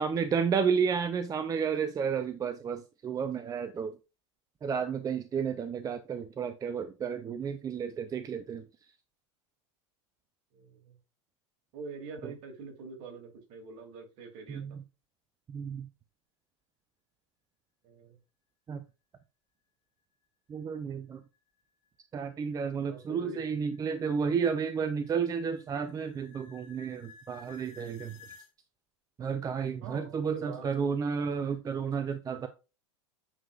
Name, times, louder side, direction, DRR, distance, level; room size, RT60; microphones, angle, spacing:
voice 1, 0.0-4.0 4.6-8.6 12.2-12.3 14.5-14.8 15.5-15.9 18.7-18.8 20.5-21.2 22.1-28.2 29.2-32.5, right 6 dB, 25° right, 0.6 m, -32 dB
voice 2, 5.3-5.8 10.5-11.0 11.7-14.8 17.8-18.2 22.9-23.4 29.8-30.9, right 4 dB, 55° right, 2.7 m, -45 dB
sound 1, 21.3-28.5, left 6 dB, 60° left, 2.3 m, -56 dB
8.8 x 4.8 x 2.4 m
hypercardioid pair, 95°, 16 cm